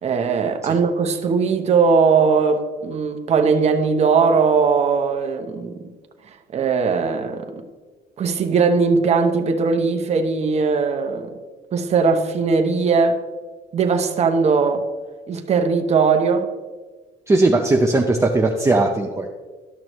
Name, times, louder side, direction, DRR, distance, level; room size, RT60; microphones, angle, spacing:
voice 1, 0.0-5.9 6.5-7.6 8.2-11.4 11.7-13.2 13.7-14.9 15.3-16.5, right 5 dB, 40° right, 0.9 m, -19 dB
voice 2, 17.3-19.3, right 2 dB, 15° right, 0.6 m, -18 dB
12.0 x 6.1 x 3.0 m
cardioid pair, 110°, 17 cm